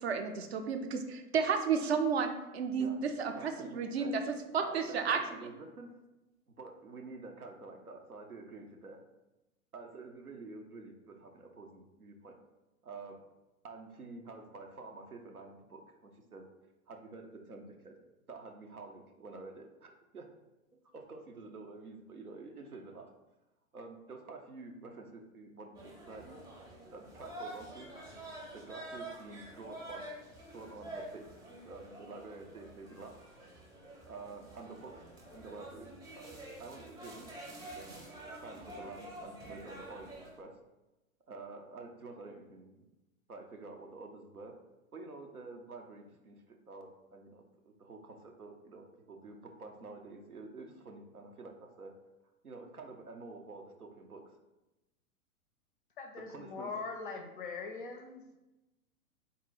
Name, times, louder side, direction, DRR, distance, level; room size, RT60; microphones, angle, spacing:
voice 1, 0.0-4.2 4.5-5.2, right 6 dB, 50° right, 5 dB, 0.5 m, -32 dB
voice 2, 2.8-4.1 4.6-5.9 6.6-9.0 9.7-12.3 12.8-13.2 13.6-16.4 16.9-17.9 18.3-20.3 20.9-23.1 23.7-26.4 26.9-27.9 28.5-30.0 30.5-31.3 31.6-33.2 34.1-35.0 35.3-37.3 37.6-38.0 38.3-40.5 41.3-42.9 43.3-44.5 44.9-51.9 52.4-54.2 56.3-56.7, right 3 dB, 90° right, 2 dB, 0.7 m, -49 dB
sound 1, 25.7-40.4, right 1 dB, 10° right, 0.7 m, -48 dB
voice 3, 56.0-58.4, left 4 dB, 40° left, 4 dB, 0.4 m, -42 dB
3.7 x 2.1 x 4.0 m, 1.0 s
figure-of-eight pair, 105°, 43 cm